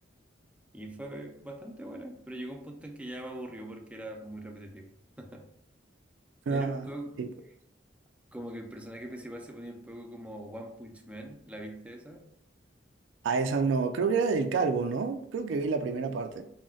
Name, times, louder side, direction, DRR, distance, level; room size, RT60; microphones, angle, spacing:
voice 1, 0.7-5.5 6.5-7.3 8.3-12.3, right 1 dB, 5° right, 0.4 m, -42 dB
voice 2, 6.5-6.8 7.2-7.3 13.2-16.4, right 4 dB, 80° right, 0.3 m, -28 dB
3.8 x 2.1 x 2.3 m
head